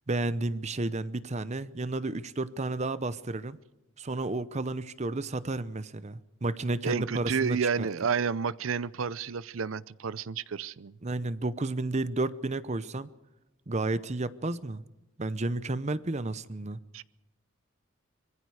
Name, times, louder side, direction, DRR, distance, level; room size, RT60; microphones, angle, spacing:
voice 1, 0.1-3.6 4.0-7.9 11.0-13.1 13.7-14.8 15.2-16.8, right 2 dB, 35° right, 0.7 m, -32 dB
voice 2, 6.8-10.9 16.9-17.0, right 6 dB, 80° right, 0.6 m, -30 dB
25.0 x 22.0 x 4.9 m
head